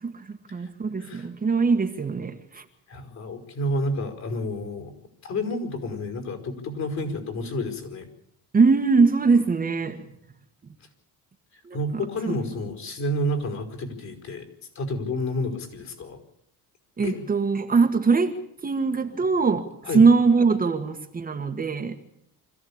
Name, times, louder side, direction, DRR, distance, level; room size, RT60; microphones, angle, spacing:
voice 1, 0.0-2.6 8.5-10.0 11.6-11.8 17.0-18.4 18.6-19.7 19.9-22.1, right 4 dB, 25° right, 4 dB, 1.6 m, -22 dB
voice 2, 2.9-4.9 5.2-8.1 11.7-14.5 14.8-16.2 17.0-17.2 19.8-20.0, left 1 dB, 50° left, 4 dB, 5.2 m, -30 dB
25.5 x 14.5 x 8.8 m, 0.73 s
cardioid pair, 130°, 35 cm